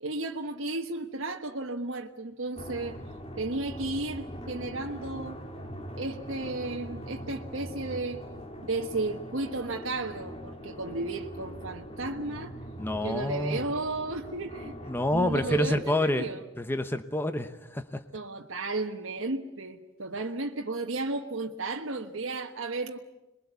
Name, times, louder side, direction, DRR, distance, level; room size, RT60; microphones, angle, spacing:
voice 1, 0.0-3.0 3.4-5.4 6.0-8.2 8.6-12.5 13.0-14.7 15.1-16.4 18.1-23.0, right 2 dB, 85° right, 1.3 m, -33 dB
sound 1, 2.6-15.8, equal, 30° left, 2.4 m, -42 dB
voice 2, 12.8-13.6 14.9-16.3 16.6-18.0, left 1 dB, 10° left, 0.9 m, -28 dB
26.5 x 22.0 x 8.1 m
head